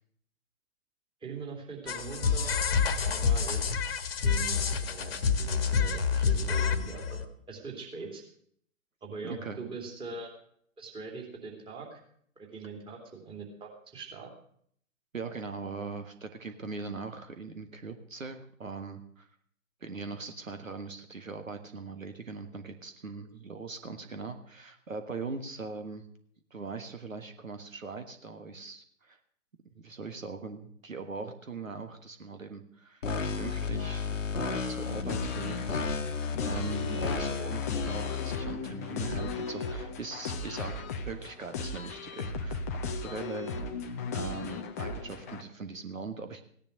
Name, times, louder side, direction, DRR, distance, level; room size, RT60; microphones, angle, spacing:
voice 1, 1.2-2.5 3.0-3.9 4.2-8.2 9.0-10.3 10.8-12.0 12.4-14.3, right 4 dB, 10° right, 0 dB, 2.9 m, -42 dB
sound 1, 1.9-7.2, left 6 dB, 45° left, 1.5 m, -28 dB
voice 2, 9.2-9.6 15.1-19.3 19.8-26.1 26.5-29.2 29.7-33.0 33.4-34.1 34.3-35.9 36.4-43.6 44.1-46.4, right 4 dB, 75° right, 8 dB, 1.7 m, -40 dB
sound 2, 33.0-38.4, left 5 dB, 65° left, 1.3 m, -32 dB
sound 3, 35.1-45.4, left 4 dB, 15° left, 0.5 m, -37 dB
16.5 x 10.5 x 6.6 m, 0.63 s
figure-of-eight pair, 125°, 40 cm